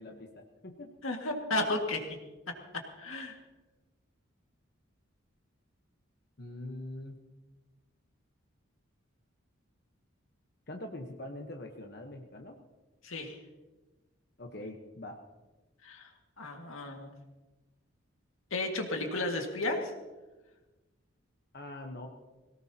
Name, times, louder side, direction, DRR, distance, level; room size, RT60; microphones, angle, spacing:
voice 1, 0.0-0.9 6.4-7.2 10.7-12.6 14.4-15.2 21.5-22.1, left 1 dB, 50° left, 2 dB, 1.1 m, -43 dB
voice 2, 1.0-2.0 3.0-3.4 13.0-13.4 15.8-16.1 16.4-17.1 18.5-19.9, left 2 dB, 85° left, 2 dB, 2.0 m, -33 dB
21.5 x 17.5 x 2.9 m, 1.2 s
head